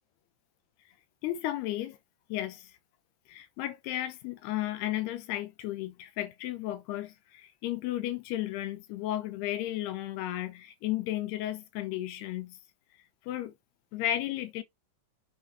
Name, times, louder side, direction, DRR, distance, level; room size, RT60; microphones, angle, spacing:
voice 1, 1.2-2.0 2.3-2.7 3.3-12.6 13.3-13.5 13.9-14.6, left 14 dB, 90° left, 3.1 m, -34 dB
8.5 x 4.9 x 4.0 m
omnidirectional pair, 4.5 m